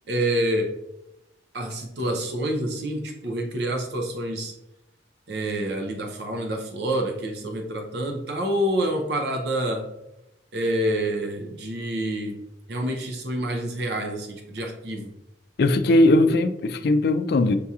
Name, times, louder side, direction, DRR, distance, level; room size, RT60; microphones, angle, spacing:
voice 1, 0.1-0.8 1.5-4.5 5.3-9.9 10.5-12.4 12.7-15.1, right 1 dB, 60° right, 0.6 m, -27 dB
voice 2, 15.6-17.6, left 2 dB, 60° left, 0.4 m, -19 dB
6.7 x 2.8 x 2.4 m
head